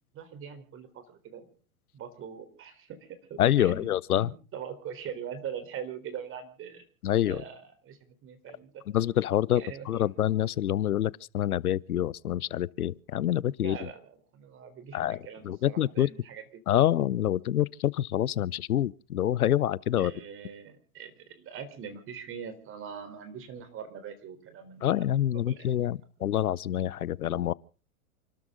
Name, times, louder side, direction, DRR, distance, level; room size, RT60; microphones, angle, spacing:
voice 1, 0.1-1.5 1.9-3.9 4.2-6.8 7.3-8.8 9.5-9.9 13.6-14.0 14.3-16.6 20.0-25.7, right 7 dB, 30° right, 3.8 m, -42 dB
voice 2, 3.4-4.3 7.0-7.4 8.9-13.9 14.9-16.1 16.7-20.1 24.8-27.5, left 11 dB, 90° left, 0.7 m, -27 dB
29.0 x 13.0 x 3.8 m
hypercardioid pair, 120°, 43 cm